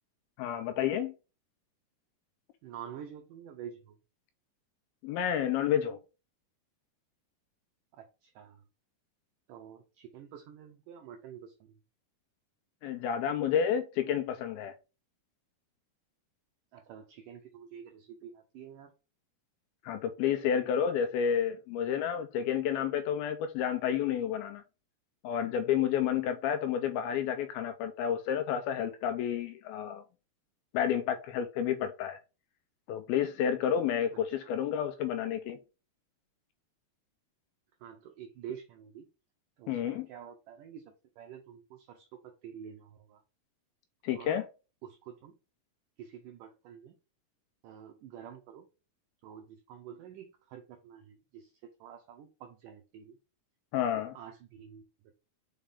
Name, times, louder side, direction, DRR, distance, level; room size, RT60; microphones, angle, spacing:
voice 1, 0.4-1.1 5.0-6.0 12.8-14.7 19.9-24.6 25.2-30.0 30.7-32.2 32.9-35.6 39.7-40.1 44.0-44.5 53.7-54.1, left 9 dB, 80° left, 2.3 m, -30 dB
voice 2, 2.6-4.0 7.9-8.6 9.5-11.8 16.7-18.9 34.1-34.5 37.8-39.1 39.6-43.2 44.2-44.4 44.8-45.3 46.0-47.0 47.6-48.7 49.2-53.2 53.8-55.1, right 8 dB, 85° right, 1.9 m, -48 dB
5.6 x 4.9 x 3.5 m
omnidirectional pair, 4.7 m